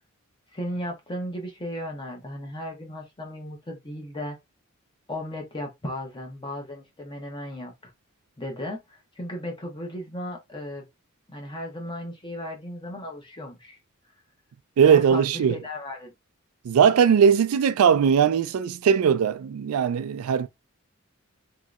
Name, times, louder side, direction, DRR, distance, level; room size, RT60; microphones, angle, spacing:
voice 1, 0.5-4.4 5.1-7.7 8.4-10.8 11.3-13.8 14.8-16.1, left 1 dB, 20° left, 0.8 m, -35 dB
voice 2, 14.8-15.6 16.6-20.5, right 7 dB, 85° right, 0.3 m, -19 dB
3.1 x 2.8 x 2.4 m
head